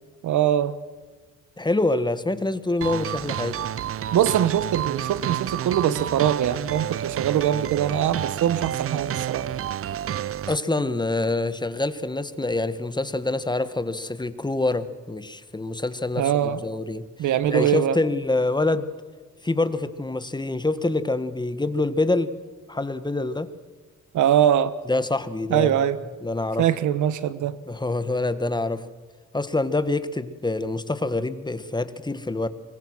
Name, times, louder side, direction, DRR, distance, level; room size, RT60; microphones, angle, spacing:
voice 1, 0.2-0.7 4.1-9.5 16.2-16.7 17.2-18.0 24.1-24.7 25.5-26.0 26.6-27.6, right 10 dB, 75° right, 15 dB, 1.4 m, -22 dB
voice 2, 1.6-3.6 10.5-17.0 17.5-18.9 19.4-22.3 22.7-23.5 24.9-25.7 26.2-26.7 27.7-28.9 29.3-32.5, left 2 dB, 15° left, 13 dB, 1.5 m, -26 dB
sound 1, 2.8-10.6, right 10 dB, 50° right, 0.6 m, -30 dB
26.5 x 22.5 x 6.3 m, 1.4 s
cardioid pair, 90°, 30 cm